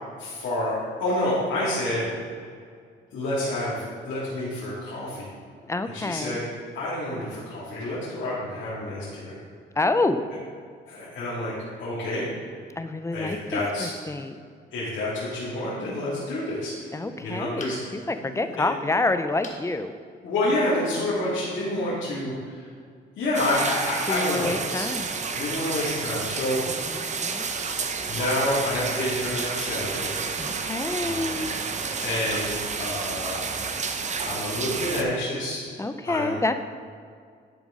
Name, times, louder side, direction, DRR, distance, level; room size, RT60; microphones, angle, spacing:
voice 1, 0.2-2.1 3.1-5.3 5.9-6.5 6.7-9.3 10.9-11.5 11.8-12.3 13.1-13.9 14.7-17.8 18.2-18.6 20.2-22.6 23.2-24.9 25.3-26.6 27.5-30.2 31.0-31.4 32.0-33.5 34.2-35.6 36.0-36.4, left 1 dB, 75° left, -10 dB, 2.2 m, -28 dB
voice 2, 5.6-6.4 9.8-10.2 12.8-14.4 16.9-19.9 24.1-25.1 26.7-27.4 30.4-31.6 35.8-36.6, left 2 dB, 15° left, 9 dB, 0.4 m, -28 dB
sound 1, 17.6-18.1 19.4-19.7 20.2-20.3 20.7-20.8, left 2 dB, 40° left, 1.3 m, -41 dB
sound 2, 23.3-35.0, right 5 dB, 35° right, 0.7 m, -30 dB
10.5 x 5.2 x 3.7 m, 2.1 s
cardioid pair, 90°, 20 cm